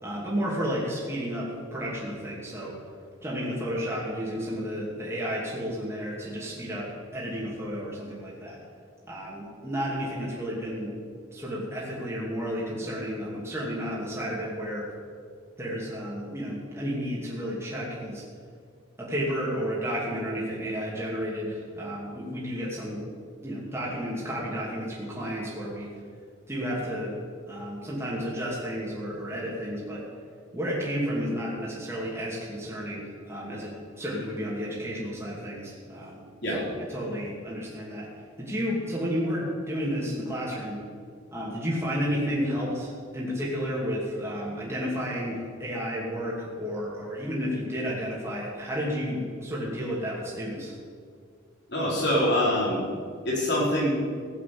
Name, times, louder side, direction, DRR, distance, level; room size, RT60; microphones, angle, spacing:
voice 1, 0.0-2.7 3.2-6.9 7.1-8.6 9.1-10.9 11.3-14.8 15.6-18.2 19.0-23.0 23.4-25.9 26.5-27.2 27.4-30.0 30.5-36.2 36.5-38.1 38.4-40.8 41.3-50.8, equal, 15° right, -6 dB, 2.7 m, -32 dB
voice 2, 51.7-52.8 53.2-53.9, equal, 60° left, -5 dB, 4.9 m, -24 dB
15.5 x 7.5 x 8.6 m, 2.1 s
head